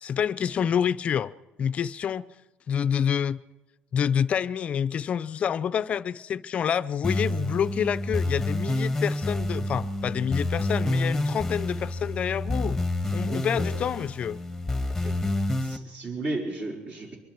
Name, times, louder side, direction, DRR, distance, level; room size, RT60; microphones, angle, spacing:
voice 1, 0.0-1.3 1.6-2.3 2.7-3.4 3.9-12.8 13.1-14.4, left 8 dB, 40° left, 0.6 m, -27 dB
sound 1, 7.0-15.8, left 2 dB, 5° left, 1.5 m, -28 dB
voice 2, 15.6-17.2, right 2 dB, 45° right, 5.2 m, -33 dB
24.5 x 23.0 x 4.6 m
cardioid pair, 150°, 3 cm